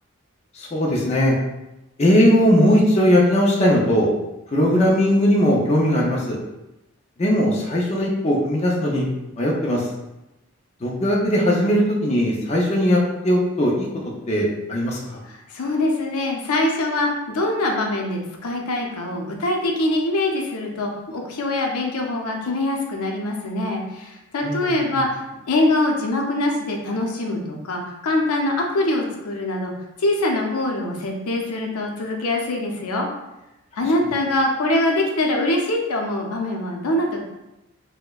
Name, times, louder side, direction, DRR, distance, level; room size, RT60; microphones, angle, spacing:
voice 1, 0.6-1.3 2.0-4.1 4.5-6.4 7.2-9.0 9.4-9.8 10.8-13.0 13.2-13.9 14.3-15.2 24.4-25.0, equal, 30° left, -3 dB, 0.4 m, -19 dB
voice 2, 15.2-25.2 25.5-29.7 30.0-33.1 33.8-37.2, left 1 dB, 85° left, 1 dB, 0.5 m, -23 dB
4.2 x 2.1 x 2.3 m, 0.95 s
head